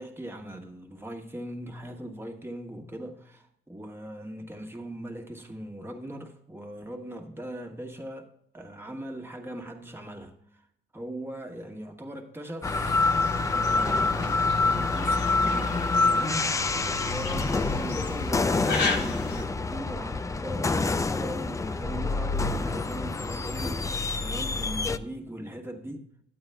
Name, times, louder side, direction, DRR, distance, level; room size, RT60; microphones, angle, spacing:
voice 1, 0.0-10.7 10.9-13.1 13.4-16.7 17.0-26.1, right 1 dB, 10° right, 1.4 m, -39 dB
sound 1, 12.6-19.4, left 3 dB, 60° left, 1.1 m, -36 dB
sound 2, 12.6-25.0, left 3 dB, 15° left, 0.4 m, -27 dB
12.0 x 8.8 x 2.2 m
cardioid pair, 90°, 20 cm